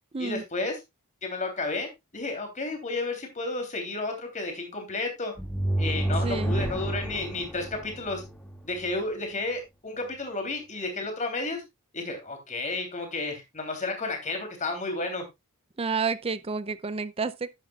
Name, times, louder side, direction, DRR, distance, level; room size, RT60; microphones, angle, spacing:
voice 1, 0.2-0.8 1.2-5.3 5.8-8.2 8.6-11.6 11.9-15.2, left 2 dB, 35° left, 3.1 m, -32 dB
sound 1, 5.4-8.9, right 1 dB, 5° left, 2.1 m, -30 dB
voice 2, 6.2-6.5 15.8-17.5, right 4 dB, 25° right, 0.5 m, -30 dB
11.0 x 9.6 x 2.4 m
head